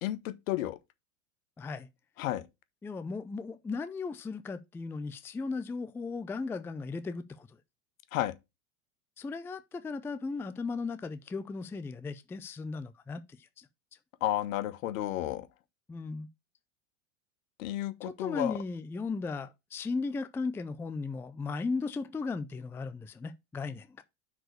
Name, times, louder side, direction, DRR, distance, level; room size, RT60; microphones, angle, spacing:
voice 1, 0.0-0.8 2.2-2.4 8.1-8.3 14.2-15.5 17.6-18.6, left 14 dB, 70° left, 1.1 m, -32 dB
voice 2, 1.6-1.9 2.8-7.5 9.2-13.7 15.9-16.3 18.0-24.0, left 4 dB, 5° left, 0.4 m, -36 dB
6.1 x 4.8 x 6.5 m
supercardioid pair, 115°, 41 cm